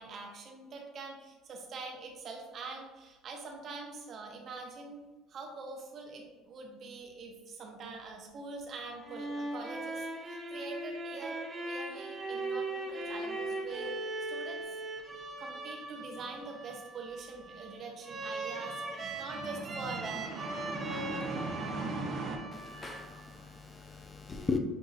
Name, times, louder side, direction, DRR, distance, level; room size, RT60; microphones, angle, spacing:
voice 1, 0.0-5.0 5.3-14.0 14.3-14.6 15.1-22.4, right 3 dB, 50° right, 2 dB, 0.9 m, -42 dB
sound 1, 8.8-23.5, right 2 dB, 30° right, 0.6 m, -40 dB
voice 2, 22.8-24.6, left 4 dB, 25° left, 4 dB, 0.5 m, -37 dB
6.6 x 2.7 x 2.6 m, 1.2 s
supercardioid pair, 100°, 0 cm